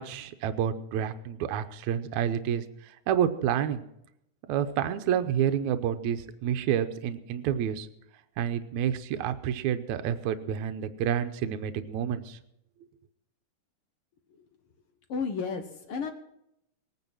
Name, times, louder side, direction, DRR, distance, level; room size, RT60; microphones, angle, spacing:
voice 1, 0.0-2.6 3.1-3.8 4.5-7.9 8.4-12.4, right 9 dB, 75° right, 8 dB, 2.1 m, -29 dB
voice 2, 15.1-16.1, left 5 dB, 60° left, 6 dB, 1.6 m, -32 dB
20.0 x 9.5 x 6.1 m, 0.79 s
omnidirectional pair, 3.6 m